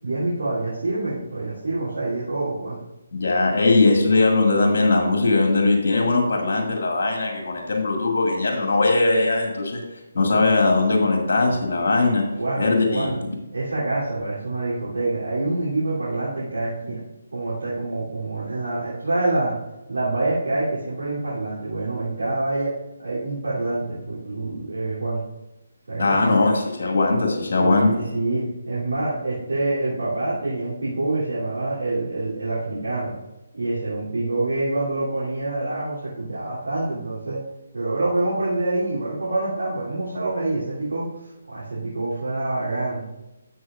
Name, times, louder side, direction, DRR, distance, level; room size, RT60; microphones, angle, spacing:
voice 1, 0.0-2.8 12.4-13.2 13.5-17.0 17.3-19.5 19.9-22.7 23.0-25.2 25.9-26.5 27.6-33.1 33.5-37.4 37.7-43.1, right 2 dB, 80° right, -9 dB, 2.9 m, -26 dB
voice 2, 3.1-9.8 10.1-12.2 12.6-13.2 26.0-28.0, left 3 dB, 55° left, 1 dB, 2.0 m, -20 dB
12.0 x 7.8 x 2.5 m, 1.0 s
figure-of-eight pair, 150°, 0 cm